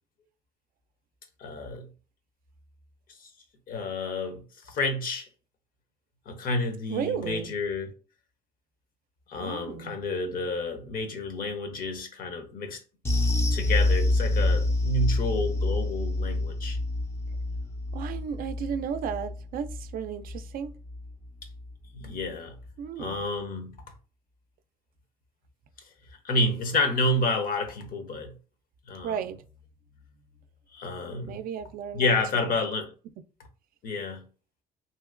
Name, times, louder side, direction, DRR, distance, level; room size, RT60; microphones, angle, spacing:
voice 1, 1.4-1.9 3.7-4.4 4.7-5.3 6.3-7.9 9.3-12.8 13.5-16.8 21.9-22.5 23.0-23.7 26.2-28.3 28.9-29.1 30.7-31.4 31.9-32.9 33.8-34.2, left 2 dB, 55° left, 0.8 m, -29 dB
voice 2, 6.9-7.5 9.4-10.0 17.9-20.7 22.8-23.2 29.0-29.4 31.3-32.5, right 7 dB, 60° right, 0.4 m, -34 dB
sound 1, 13.0-21.7 22.0-22.2 22.6-22.7, left 2 dB, 15° left, 0.4 m, -27 dB
2.8 x 2.8 x 2.4 m
cardioid pair, 110°, 17 cm